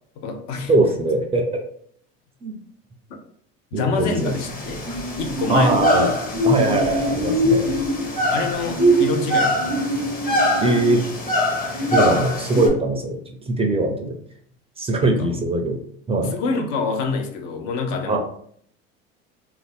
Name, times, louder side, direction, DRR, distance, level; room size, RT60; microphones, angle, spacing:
voice 1, 0.2-0.7 3.1-3.2 3.7-4.8 5.2-5.9 8.3-9.9 15.0-15.4 16.2-18.2, left 4 dB, 70° left, 4 dB, 0.6 m, -26 dB
voice 2, 0.7-1.6 2.4-2.5 3.7-4.3 5.5-6.1 6.4-7.7 10.6-11.0 11.9-13.2 13.5-14.1 14.8-15.8 16.1-16.4 18.0-18.2, right 2 dB, 20° right, 3 dB, 0.4 m, -21 dB
sound 1, 4.1-12.7, equal, 30° left, 0.8 m, -22 dB
2.6 x 2.1 x 3.4 m, 0.64 s
supercardioid pair, 110°, 31 cm